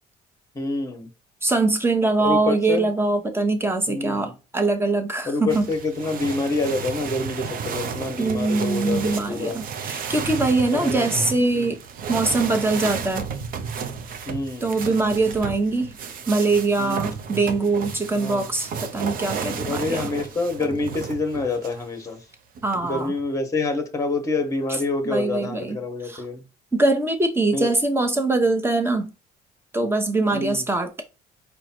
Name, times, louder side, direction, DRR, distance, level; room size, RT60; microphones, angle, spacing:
voice 1, 0.5-1.1 2.2-2.9 3.9-4.3 5.3-9.6 10.7-11.0 11.5-11.7 14.3-14.8 16.8-17.0 18.1-18.5 19.6-22.2 22.8-26.4 27.5-27.7 30.3-30.7, left 3 dB, 20° left, 1.3 m, -27 dB
voice 2, 1.4-5.7 8.2-11.8 12.1-13.3 14.6-16.0 16.3-20.1 22.6-23.1 25.0-25.8 26.0-26.2 26.7-29.1 29.7-30.9, right 3 dB, 15° right, 1.1 m, -22 dB
sound 1, 5.5-21.8 22.6-23.2, right 6 dB, 55° right, 0.8 m, -33 dB
4.8 x 2.3 x 4.3 m
cardioid pair, 110°, 17 cm